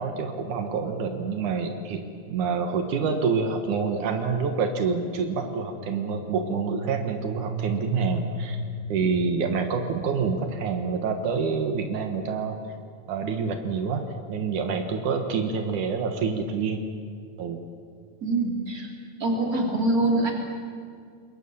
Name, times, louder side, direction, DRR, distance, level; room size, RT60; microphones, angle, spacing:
voice 1, 0.0-8.6 8.9-12.6 13.1-16.8 17.4-17.6, right 5 dB, 80° right, 6 dB, 2.9 m, -27 dB
sound 1, 5.6-10.4, right 1 dB, 45° left, 6.3 m, -35 dB
voice 2, 18.2-18.9 19.2-20.3, right 2 dB, 30° right, 1 dB, 3.8 m, -24 dB
27.5 x 22.5 x 7.1 m, 2.2 s
omnidirectional pair, 3.4 m